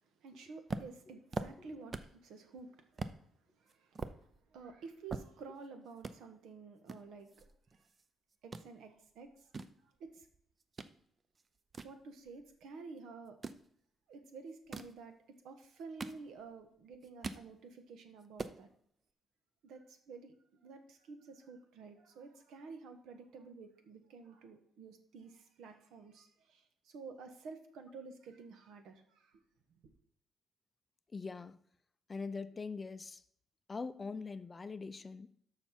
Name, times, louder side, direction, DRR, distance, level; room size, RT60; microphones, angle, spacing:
voice 1, 0.2-3.2 3.6-7.5 8.4-9.3 10.0-10.3 11.8-13.4 14.1-15.2 15.4-18.7 19.6-20.3 20.6-29.4 29.7-29.9, right 4 dB, 80° right, 7 dB, 1.4 m, -51 dB
sound 1, 0.7-2.2 2.6-2.7 3.0-3.2 3.7-5.7 6.0-6.2 6.9-8.1 8.3-8.7 9.2-10.9 11.3-12.6 13.3-13.7 14.5-15.0 15.6-16.6 16.9-17.5 17.9-18.0 18.2-18.6, right 4 dB, 30° right, 0.6 m, -43 dB
voice 2, 1.4-1.7 31.1-31.6 32.1-33.2 33.7-35.3, left 4 dB, 25° left, 13 dB, 0.5 m, -43 dB
12.5 x 5.7 x 4.4 m, 0.65 s
cardioid pair, 125°, 0 cm